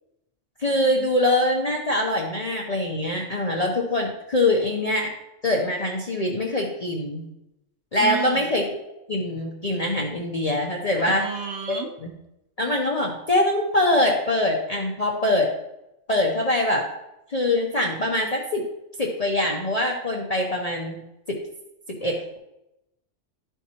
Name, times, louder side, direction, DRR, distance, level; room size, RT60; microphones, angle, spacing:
voice 1, 0.6-5.1 5.4-7.3 7.9-8.6 9.1-11.3 11.7-11.8 12.0-12.1 12.6-15.5 16.1-16.9 17.3-18.7 19.0-21.0 21.3-21.4 22.0-22.4, left 1 dB, 35° left, -1 dB, 0.8 m, -23 dB
voice 2, 8.0-8.5 11.1-11.9, right 7 dB, 65° right, 2 dB, 1.1 m, -31 dB
12.0 x 4.5 x 2.9 m, 0.89 s
omnidirectional pair, 1.3 m